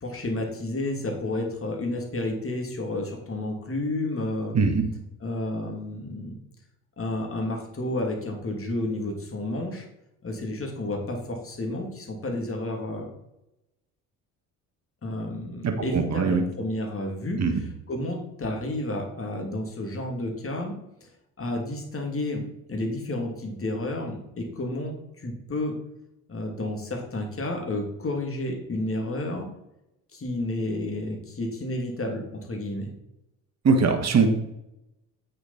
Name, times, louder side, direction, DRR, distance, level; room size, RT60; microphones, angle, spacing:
voice 1, 0.0-4.6 5.2-6.4 7.0-9.8 10.2-13.1 15.0-17.4 17.9-20.8 21.0-21.1 21.4-25.7 26.3-29.5 30.1-32.9, left 1 dB, 30° left, 2 dB, 2.9 m, -31 dB
voice 2, 4.5-4.8 15.6-16.4 17.4-17.6 33.6-34.3, right 4 dB, 35° right, 4 dB, 1.5 m, -21 dB
8.5 x 6.7 x 4.4 m, 0.86 s
hypercardioid pair, 50°, 44 cm